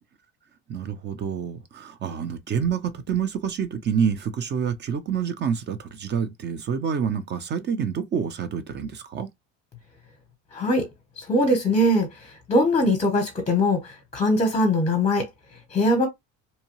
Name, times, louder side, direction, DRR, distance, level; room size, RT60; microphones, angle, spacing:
voice 1, 0.7-9.3, right 7 dB, 30° right, 0.6 m, -27 dB
voice 2, 10.5-10.8 11.2-12.1 12.5-15.3 15.7-16.1, left 1 dB, 20° left, 0.8 m, -21 dB
2.8 x 2.2 x 3.0 m
cardioid pair, 120°, 34 cm